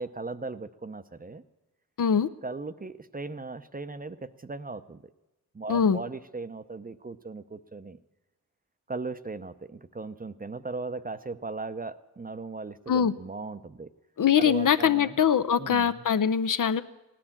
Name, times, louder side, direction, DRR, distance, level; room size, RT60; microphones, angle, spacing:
voice 1, 0.0-1.4 2.4-5.0 5.5-8.0 8.9-13.9 14.4-15.2 15.6-16.0, right 3 dB, 25° right, 12 dB, 0.6 m, -38 dB
voice 2, 2.0-2.3 5.7-6.0 12.9-13.1 14.2-16.8, left 8 dB, 60° left, 12 dB, 0.7 m, -23 dB
16.5 x 10.0 x 7.2 m, 1.0 s
cardioid pair, 65°, 36 cm